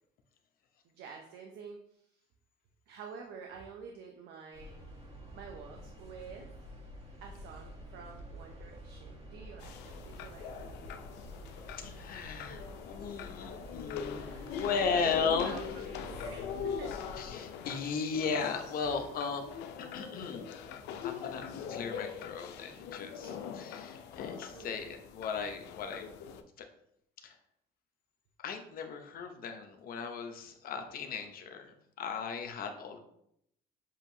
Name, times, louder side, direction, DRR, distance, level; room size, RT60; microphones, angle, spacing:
voice 1, 0.8-2.2 2.9-4.8 5.3-6.5 7.2-10.8 14.1-17.0 23.2-23.4 24.4-24.8, right 6 dB, 75° right, 2 dB, 0.6 m, -49 dB
sound 1, 4.5-17.3, equal, 40° right, 1.4 m, -49 dB
sound 2, 9.6-26.4, left 7 dB, 90° left, 0.4 m, -42 dB
voice 2, 11.7-15.6 17.2-19.4 19.9-23.3 23.6-26.1 26.6-26.7 27.2-27.4 28.4-33.0, left 5 dB, 60° left, 6 dB, 0.7 m, -36 dB
7.3 x 2.7 x 2.7 m, 0.74 s
cardioid pair, 110°, 17 cm